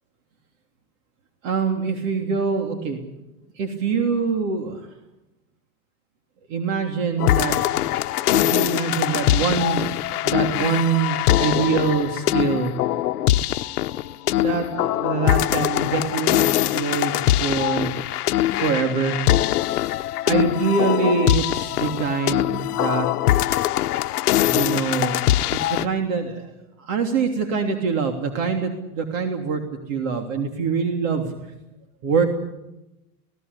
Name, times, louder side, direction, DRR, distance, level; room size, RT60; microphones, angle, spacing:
voice 1, 1.4-3.0 3.6-4.8 6.5-7.6 8.1-9.9 10.2-12.7 14.4-18.0 18.6-19.1 20.2-23.1 24.4-26.5 26.8-31.3 32.0-32.3, right 5 dB, 60° right, 4 dB, 3.3 m, -24 dB
sound 1, 7.2-25.9, left 14 dB, 85° left, 0.9 m, -22 dB
24.5 x 18.0 x 8.2 m, 0.93 s
supercardioid pair, 130°, 44 cm